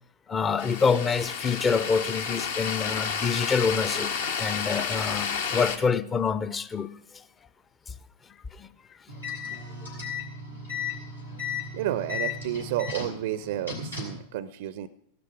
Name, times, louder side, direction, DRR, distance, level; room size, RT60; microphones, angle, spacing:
voice 1, 0.3-4.1 4.4-7.2 7.9-8.0 8.5-8.7, left 5 dB, 20° left, 0.6 m, -26 dB
sound 1, 0.6-5.8, left 6 dB, 60° left, 1.2 m, -31 dB
sound 2, 9.1-14.3, left 5 dB, 85° left, 4.6 m, -35 dB
voice 2, 11.7-14.9, right 12 dB, 55° right, 0.5 m, -31 dB
16.0 x 12.0 x 4.9 m
figure-of-eight pair, 90°, 0 cm